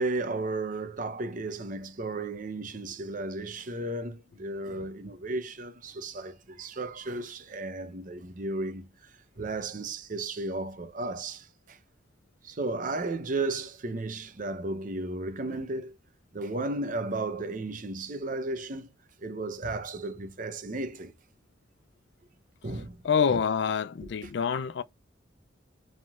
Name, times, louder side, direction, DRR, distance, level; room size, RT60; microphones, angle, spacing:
voice 1, 0.0-8.9 9.4-11.8 12.4-16.0 16.3-18.9 19.2-21.1 22.6-23.0 23.3-23.4, right 2 dB, 45° right, 0.7 m, -34 dB
voice 2, 23.0-24.8, left 6 dB, 65° left, 0.4 m, -26 dB
5.0 x 3.6 x 2.4 m
head